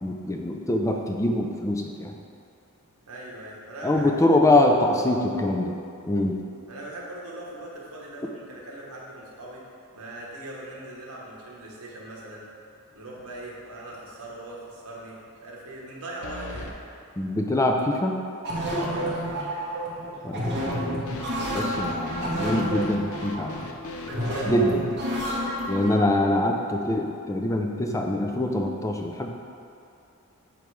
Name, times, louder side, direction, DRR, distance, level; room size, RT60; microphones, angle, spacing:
voice 1, 0.0-2.1 3.8-5.8 6.1-6.4 17.2-18.2 20.2-21.3 21.5-23.6 24.4-24.9 25.7-29.3, left 1 dB, 15° left, 2 dB, 0.4 m, -24 dB
voice 2, 3.1-5.2 6.7-9.6 9.9-12.4 12.9-16.8 18.7-19.4 24.1-24.6 25.1-25.6, right 1 dB, 75° right, -4 dB, 1.2 m, -40 dB
sound 1, 13.1-13.6 13.9-14.0 16.2-16.8 21.1-24.5, left 3 dB, 65° left, 0.5 m, -39 dB
sound 2, 18.4-25.9, equal, 50° right, 1.0 m, -30 dB
7.0 x 3.1 x 4.6 m, 2.5 s
head